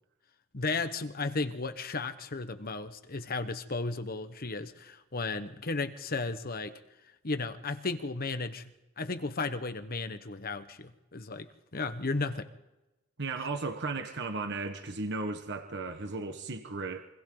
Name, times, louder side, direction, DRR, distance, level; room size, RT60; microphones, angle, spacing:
voice 1, 0.5-6.7 7.2-8.6 9.0-12.5, left 3 dB, 45° left, 1.2 m, -34 dB
voice 2, 13.2-17.1, right 3 dB, 55° right, 1.4 m, -35 dB
28.5 x 24.5 x 3.9 m
head